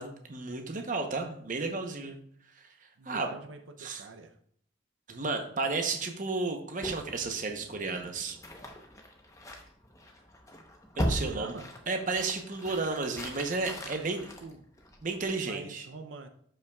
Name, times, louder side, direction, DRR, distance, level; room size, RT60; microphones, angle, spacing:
voice 1, 0.0-2.2 2.6-2.7 3.0-3.4 3.8-4.0 5.1-8.4 11.0-11.5 11.9-14.3 15.0-15.9, right 3 dB, 40° right, 5 dB, 0.8 m, -33 dB
voice 2, 3.0-4.4 11.1-11.7 13.8-14.1 14.4-14.6 15.4-16.3, right 3 dB, 80° right, 6 dB, 0.6 m, -44 dB
sound 1, 6.8-15.2, equal, 15° left, 0.8 m, -39 dB
12.0 x 5.6 x 2.3 m, 0.66 s
head